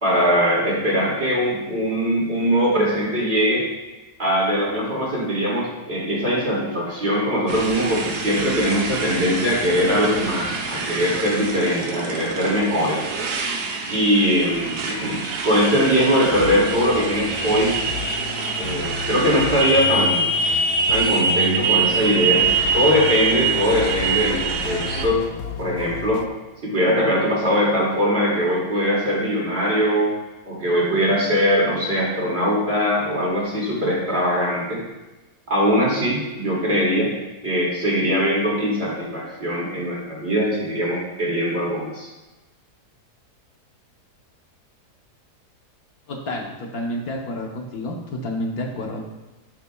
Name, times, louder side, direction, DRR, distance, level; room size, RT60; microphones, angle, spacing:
voice 1, 0.0-3.6 4.2-13.1 13.9-17.7 18.6-20.3 20.9-22.4 22.7-25.2 25.6-26.2 26.6-30.1 30.5-34.8 35.5-37.1 37.4-42.1, equal, 40° right, -5 dB, 2.6 m, -21 dB
Motorcycle, 7.5-25.1, right 4 dB, 75° right, 1.4 m, -25 dB
sound 1, 16.3-26.3, left 8 dB, 90° left, 1.2 m, -33 dB
voice 2, 46.1-49.1, left 1 dB, 65° left, 0 dB, 1.5 m, -29 dB
11.5 x 6.9 x 2.3 m, 1.1 s
omnidirectional pair, 1.7 m